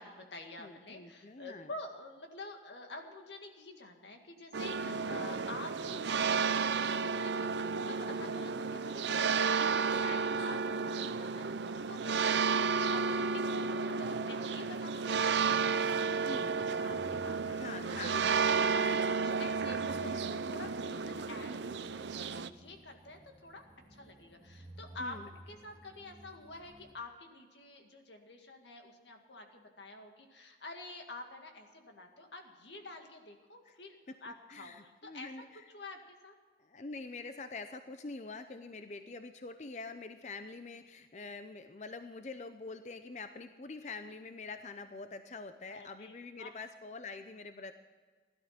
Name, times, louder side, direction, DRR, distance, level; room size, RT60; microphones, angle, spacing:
voice 1, 0.0-16.4 16.8-18.1 18.7-23.6 23.9-35.3 35.7-36.4 45.7-46.5, left 2 dB, 90° left, 4 dB, 2.1 m, -48 dB
voice 2, 0.6-1.7 4.8-5.0 16.3-16.5 17.6-19.1 25.0-25.3 33.7-33.8 34.1-35.6 36.6-47.7, left 3 dB, 40° left, 9 dB, 0.6 m, -45 dB
sound 1, 4.5-22.5, right 5 dB, 90° right, 0.6 m, -32 dB
sound 2, 16.1-26.9, right 1 dB, 25° right, 1.9 m, -55 dB
16.5 x 12.0 x 5.9 m, 1.5 s
head